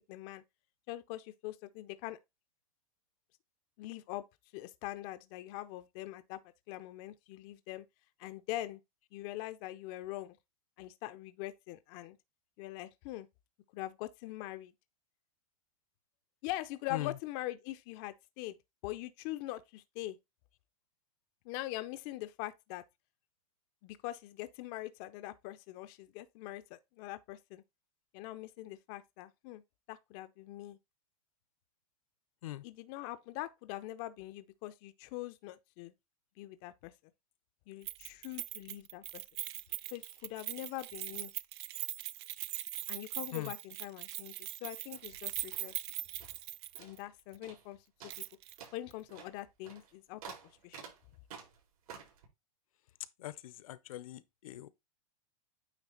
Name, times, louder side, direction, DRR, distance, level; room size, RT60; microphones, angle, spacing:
voice 1, 0.1-0.4 0.9-2.2 3.8-4.2 4.5-6.4 6.7-7.9 8.2-8.8 9.1-10.4 10.8-12.2 12.6-13.3 13.7-14.7 16.4-18.6 18.8-20.2 21.4-22.8 23.8-27.6 28.1-29.6 29.9-30.8 32.6-35.9 36.4-36.9 37.7-39.2 39.9-41.3 42.9-45.7 46.8-47.8 48.7-50.2 50.6-50.9, left 16 dB, 30° left, 0.4 m, -43 dB
voice 2, 16.9-17.2 32.4-32.6 43.3-43.5 53.2-54.7, left 15 dB, 70° left, 0.7 m, -41 dB
Keys jangling, 37.9-47.0 47.3-47.4 48.1-48.6 48.9-49.0, right 15 dB, 50° right, 0.4 m, -41 dB
sound 1, 44.8-46.5 46.7-47.1 47.4-47.7 48.0-52.3, right 7 dB, 85° right, 4.1 m, -52 dB
9.1 x 3.7 x 3.7 m
supercardioid pair, 160°, 19 cm